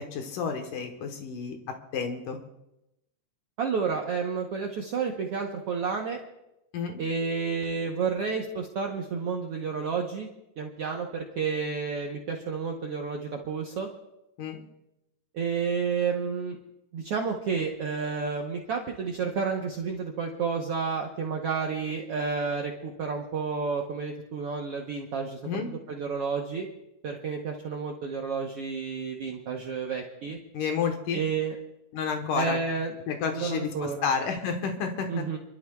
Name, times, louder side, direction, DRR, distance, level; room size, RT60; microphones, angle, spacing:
voice 1, 0.0-1.6 1.9-2.4 6.7-7.0 14.4-14.6 25.4-25.7 30.5-31.2 31.9-32.6 33.1-35.2, left 6 dB, 75° left, 4 dB, 2.8 m, -30 dB
voice 2, 3.6-6.2 7.0-10.3 10.6-13.9 15.3-16.6 16.9-25.4 25.9-26.7 27.0-30.4 31.1-31.6 32.3-32.9 33.3-34.1 35.1-35.4, right 5 dB, 65° right, 1 dB, 1.6 m, -30 dB
29.5 x 12.5 x 2.3 m, 0.89 s
omnidirectional pair, 3.8 m